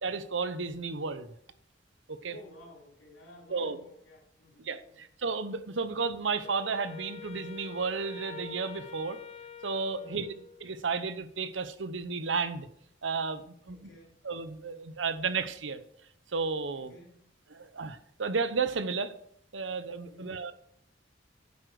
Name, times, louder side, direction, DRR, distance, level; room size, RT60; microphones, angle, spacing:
voice 1, 0.0-1.3 2.1-2.3 3.5-3.8 4.6-9.2 9.6-10.3 10.6-12.7 13.0-13.8 14.2-15.8 16.3-16.9 17.5-19.2 19.5-20.5, right 4 dB, 75° right, 12 dB, 0.9 m, -33 dB
voice 2, 2.2-5.0 10.0-10.4 13.7-14.2 16.7-17.3 20.0-20.4, left 1 dB, 85° left, -2 dB, 3.5 m, -54 dB
Wind instrument woodwind instrument, 6.4-10.8, left 6 dB, 35° left, 0.6 m, -46 dB
9.7 x 7.7 x 4.8 m, 0.68 s
head